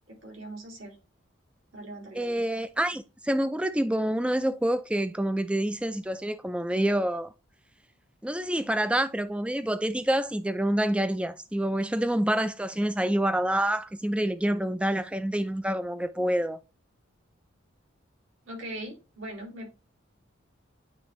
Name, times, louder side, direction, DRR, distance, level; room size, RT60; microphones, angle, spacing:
voice 1, 0.1-1.0 1.7-2.5 18.5-19.7, right 1 dB, 85° right, 2.8 m, -40 dB
voice 2, 2.1-7.3 8.2-16.6, right 1 dB, 5° right, 0.4 m, -27 dB
8.8 x 3.7 x 3.1 m
head